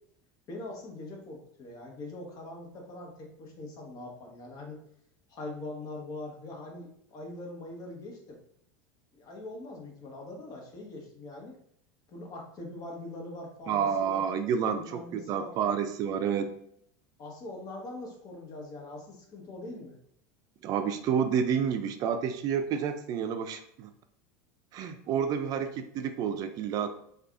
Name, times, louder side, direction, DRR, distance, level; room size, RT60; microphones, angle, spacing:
voice 1, 0.5-4.8 5.3-8.4 9.1-11.5 12.1-14.3 14.7-15.5 17.2-20.0, left 2 dB, 45° left, 0 dB, 1.3 m, -42 dB
voice 2, 13.7-16.5 20.6-23.9 24.7-26.9, right 7 dB, 50° right, 8 dB, 0.4 m, -29 dB
4.6 x 2.4 x 2.6 m, 0.67 s
hypercardioid pair, 95°, 9 cm